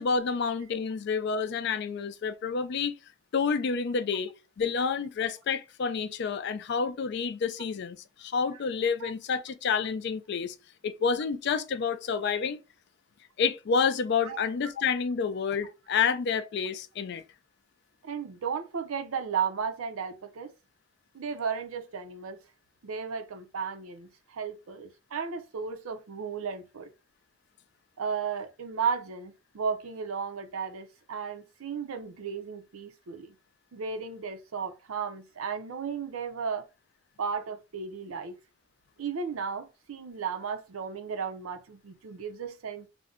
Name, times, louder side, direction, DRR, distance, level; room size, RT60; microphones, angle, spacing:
voice 1, 0.0-3.0 3.3-10.5 10.8-12.6 13.4-17.2, left 5 dB, 55° left, 0.3 m, -29 dB
voice 2, 18.0-20.5 21.1-22.4 22.8-26.9 28.0-33.3 33.7-36.6 37.2-38.3 39.0-42.9, right 6 dB, 85° right, 0.5 m, -34 dB
2.5 x 2.1 x 3.6 m
head